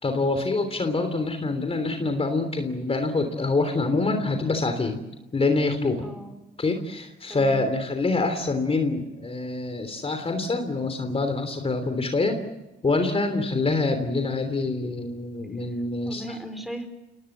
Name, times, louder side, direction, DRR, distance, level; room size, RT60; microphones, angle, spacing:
voice 1, 0.0-5.0 5.3-6.1 6.6-12.4 12.8-16.2, left 3 dB, 30° left, 7 dB, 3.3 m, -25 dB
voice 2, 6.0-6.3 7.3-7.7 16.0-16.9, right 1 dB, ahead, 8 dB, 5.0 m, -37 dB
28.5 x 19.5 x 7.4 m, 1.0 s
cardioid pair, 90°, 20 cm